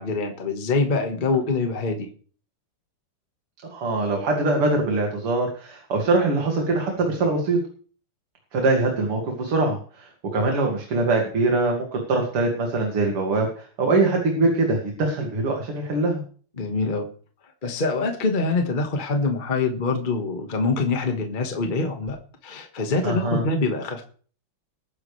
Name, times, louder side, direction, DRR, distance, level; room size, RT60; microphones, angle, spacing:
voice 1, 0.0-2.1 16.6-17.1 17.6-22.2 22.4-24.0, left 3 dB, 25° left, 4 dB, 1.5 m, -24 dB
voice 2, 3.7-7.6 8.5-16.2 23.0-23.4, right 3 dB, 80° right, 1 dB, 3.3 m, -23 dB
20.5 x 10.0 x 3.3 m, 0.43 s
omnidirectional pair, 2.4 m